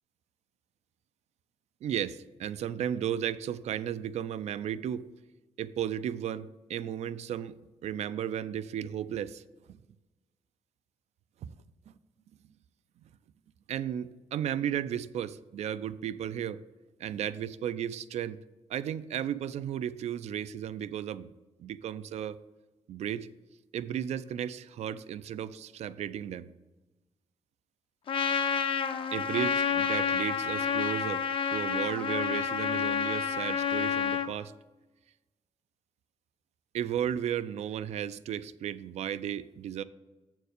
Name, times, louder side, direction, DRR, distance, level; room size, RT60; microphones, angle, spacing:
voice 1, 1.8-5.1 5.6-9.4 13.7-16.6 17.0-18.4 18.7-21.3 21.6-22.4 22.9-23.3 23.7-26.5 29.1-31.2 31.5-34.5 36.7-39.8, right 10 dB, 75° right, 0.4 m, -34 dB
Trumpet, 28.1-34.3, left 7 dB, 50° left, 0.5 m, -29 dB
7.2 x 4.6 x 6.5 m
wide cardioid pair, 140°, 11 cm